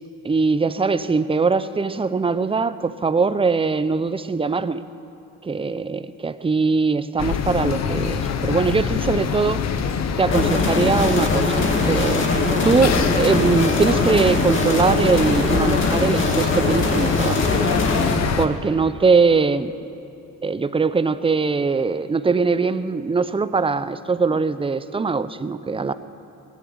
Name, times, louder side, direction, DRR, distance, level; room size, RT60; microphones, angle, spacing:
voice 1, 0.2-4.8 5.4-9.6 10.2-17.4 18.4-19.7 20.4-25.9, right 4 dB, 20° right, 13 dB, 0.6 m, -21 dB
sound 1, 7.2-18.5, left 7 dB, 60° left, 1.0 m, -25 dB
sound 2, 10.3-18.1, left 2 dB, 40° left, 2.4 m, -22 dB
17.0 x 10.5 x 7.9 m, 2.6 s
cardioid pair, 90°, 30 cm